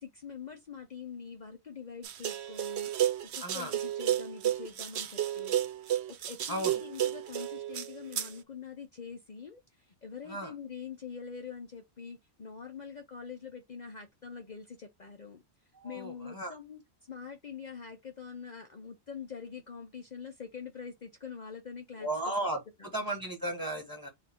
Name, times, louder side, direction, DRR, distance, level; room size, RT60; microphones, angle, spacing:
voice 1, 0.0-2.9 3.2-5.6 6.1-15.4 15.8-16.8 17.1-22.3 22.8-22.9, left 6 dB, 45° left, 0.7 m, -44 dB
sound 1, 2.0-8.3, right 11 dB, 75° right, 0.9 m, -32 dB
voice 2, 3.4-3.7 6.5-6.8 10.3-10.5 15.8-16.5 22.0-22.6 22.9-24.1, right 1 dB, 20° right, 1.1 m, -35 dB
4.1 x 2.4 x 4.3 m
omnidirectional pair, 1.1 m